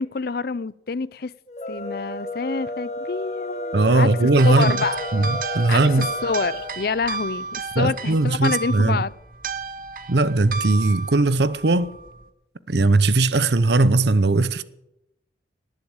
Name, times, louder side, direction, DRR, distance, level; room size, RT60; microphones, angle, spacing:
voice 1, 0.0-1.3 1.7-4.1 4.4-5.0 5.7-9.1, left 4 dB, 55° left, 0.5 m, -27 dB
sound 1, 1.5-6.8, left 1 dB, 40° left, 1.1 m, -32 dB
voice 2, 3.7-4.8 5.1-6.1 7.8-9.0 10.1-11.9 12.7-14.6, right 2 dB, 65° right, 0.8 m, -19 dB
sound 2, 4.4-12.3, right 4 dB, 50° right, 1.1 m, -32 dB
18.5 x 7.7 x 8.9 m
head